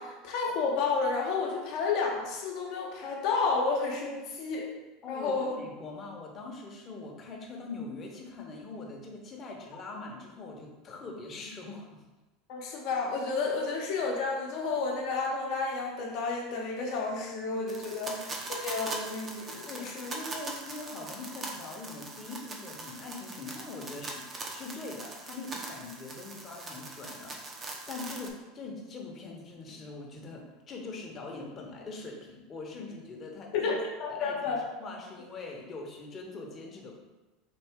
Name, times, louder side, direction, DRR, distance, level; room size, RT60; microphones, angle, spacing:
voice 1, 0.0-4.7 5.1-5.6 12.5-18.1 18.5-20.1 33.5-34.6, left 4 dB, 60° left, -1 dB, 0.9 m, -31 dB
voice 2, 5.0-12.0 17.9-18.2 19.7-33.7 34.1-37.0, left 3 dB, 35° left, 0 dB, 0.9 m, -42 dB
sound 1, 17.7-28.3, right 2 dB, 30° right, 0.8 m, -41 dB
4.2 x 2.6 x 3.6 m, 1.1 s
hypercardioid pair, 95°, 0 cm